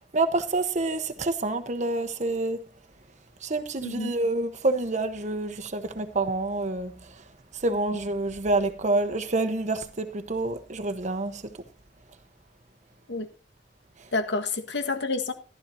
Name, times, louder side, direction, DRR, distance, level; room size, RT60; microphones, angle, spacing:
voice 1, 0.1-2.6 3.4-7.1 7.5-11.5, right 2 dB, 40° right, 1.1 m, -27 dB
voice 2, 3.8-4.1 7.9-8.0 13.1-13.3 14.1-15.3, left 3 dB, 75° left, 1.6 m, -29 dB
14.5 x 12.0 x 2.8 m
head